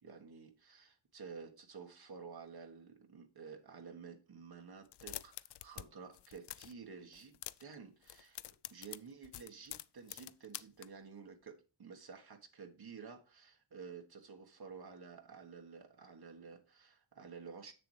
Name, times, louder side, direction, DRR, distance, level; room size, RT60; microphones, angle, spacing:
voice 1, 0.0-8.4 8.7-17.7, right 5 dB, 60° right, 1.4 m, -52 dB
sound 1, 4.8-5.9 6.1-6.8 7.1-7.7 8.0-10.9, left 13 dB, 65° left, 0.5 m, -47 dB
7.1 x 6.8 x 3.2 m
cardioid pair, 60°, 43 cm